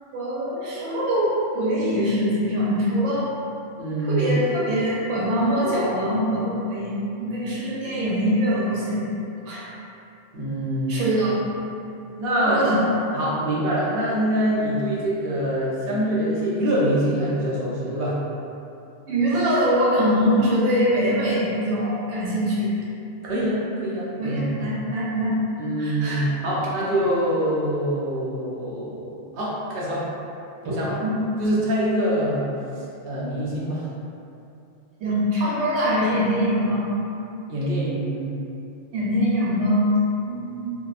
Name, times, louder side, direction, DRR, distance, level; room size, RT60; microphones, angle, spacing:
voice 1, 0.1-3.3 4.0-9.1 9.5-9.7 10.9-11.4 12.4-12.8 19.1-22.8 24.2-25.4 25.8-26.3 30.6-30.7 31.0-31.2 35.0-36.9 38.9-40.7, equal, 90° right, -7 dB, 1.0 m, -23 dB
voice 2, 3.8-4.3 10.3-11.1 12.2-12.9 13.1-18.2 23.2-24.6 25.6-30.0 30.6-31.0 31.4-32.5 33.0-33.8 37.5-38.3, right 1 dB, 60° right, -7 dB, 0.8 m, -24 dB
2.6 x 2.1 x 2.3 m, 2.7 s
omnidirectional pair, 1.2 m